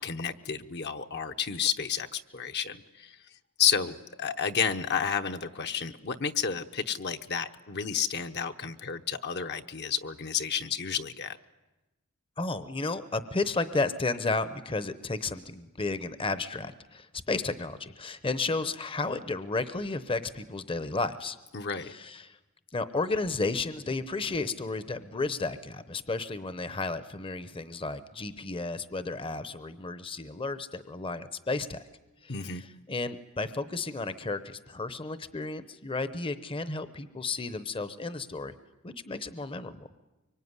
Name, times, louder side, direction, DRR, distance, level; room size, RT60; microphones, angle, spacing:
voice 1, 0.0-3.2 3.6-11.4 21.5-21.9 32.3-32.6, left 7 dB, 50° left, 7 dB, 0.9 m, -31 dB
voice 2, 12.4-21.4 21.8-22.4 22.7-31.8 32.2-32.4 32.9-38.5 38.8-39.9, left 3 dB, 25° left, 13 dB, 0.8 m, -33 dB
24.5 x 24.0 x 9.7 m, 1.1 s
head